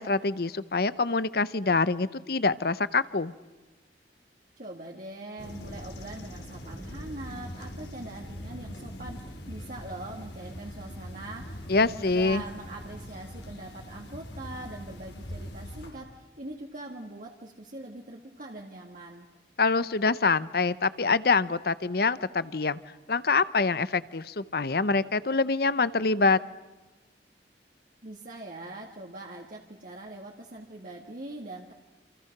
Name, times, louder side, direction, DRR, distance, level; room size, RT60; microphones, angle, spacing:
voice 1, 0.0-3.3 11.7-12.4 19.6-22.8 23.1-26.4, left 4 dB, 60° left, 16 dB, 0.8 m, -25 dB
voice 2, 4.6-19.3 28.0-31.7, right 2 dB, 50° right, 0 dB, 1.9 m, -42 dB
sound 1, 5.4-15.9, equal, 90° left, 5.0 m, -42 dB
28.5 x 27.5 x 6.0 m, 1.2 s
head